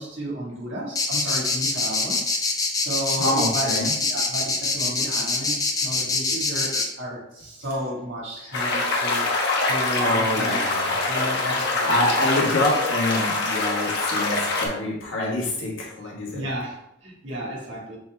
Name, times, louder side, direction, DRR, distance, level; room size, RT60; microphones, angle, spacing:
voice 1, 0.0-2.2 2.7-9.3 9.6-10.7 11.1-12.1 16.3-18.0, equal, 85° right, -4 dB, 1.5 m, -33 dB
sound 1, 0.9-6.8, left 3 dB, 20° left, 0.5 m, -24 dB
voice 2, 3.2-3.9 8.4-8.6 10.0-10.9 11.8-16.4, left 1 dB, 90° left, -4 dB, 1.6 m, -26 dB
sound 2, 8.5-14.7, left 2 dB, 60° left, 0.9 m, -24 dB
6.0 x 3.5 x 2.3 m, 0.82 s
head